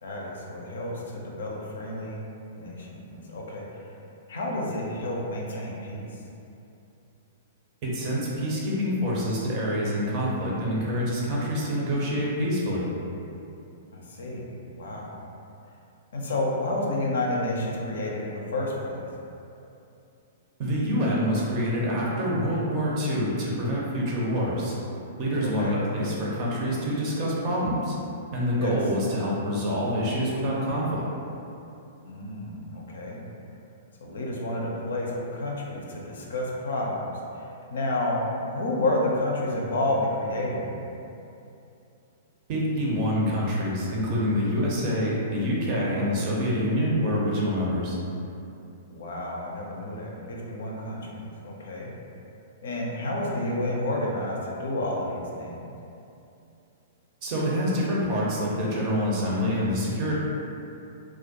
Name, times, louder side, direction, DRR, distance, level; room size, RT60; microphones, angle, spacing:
voice 1, 0.0-2.2 2.6-3.8 4.3-6.1 13.9-14.5 14.8-15.1 16.1-19.0 25.6-25.8 28.6-28.8 32.0-33.2 34.0-37.1 37.3-38.2 38.5-40.8 45.7-46.0 48.9-51.9 52.6-55.6, left 1 dB, 65° left, -2 dB, 0.4 m, -30 dB
voice 2, 7.8-12.9 20.6-24.7 25.2-27.9 28.3-31.1 42.5-48.0 57.2-60.1, equal, 40° right, -5 dB, 0.5 m, -26 dB
2.2 x 2.1 x 2.7 m, 2.7 s
figure-of-eight pair, 105°, 0 cm